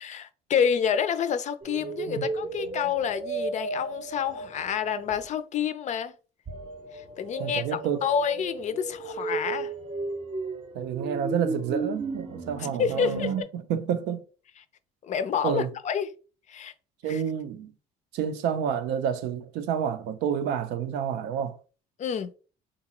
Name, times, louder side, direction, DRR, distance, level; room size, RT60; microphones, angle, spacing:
voice 1, 0.0-6.1 6.9-9.7 12.6-13.5 15.0-16.1 16.5-16.7 17.1-17.2 22.0-22.3, left 7 dB, 45° left, 0.4 m, -28 dB
sound 1, 1.6-5.3 6.5-13.4, right 3 dB, 30° right, 0.6 m, -34 dB
voice 2, 7.4-8.1 10.7-14.2 15.4-15.7 17.0-17.7 18.1-21.6, right 8 dB, 90° right, 0.5 m, -29 dB
3.9 x 2.4 x 2.9 m
cardioid pair, 110°, 17 cm